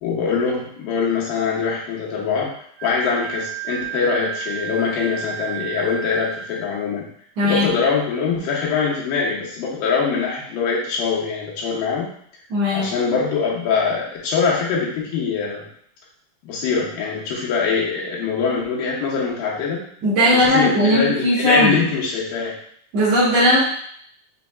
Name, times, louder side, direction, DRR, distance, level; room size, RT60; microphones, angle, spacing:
voice 1, 0.0-2.5 2.8-7.1 7.4-12.1 12.7-15.7 16.4-19.8 20.3-22.5, left 5 dB, 85° left, -4 dB, 2.8 m, -23 dB
Wind instrument woodwind instrument, 2.8-6.7, right 8 dB, 80° right, 1.9 m, -32 dB
voice 2, 7.4-7.7 12.5-12.9 20.0-21.8 22.9-23.6, equal, 55° right, -8 dB, 2.3 m, -17 dB
6.7 x 3.4 x 2.3 m, 0.64 s
omnidirectional pair, 3.9 m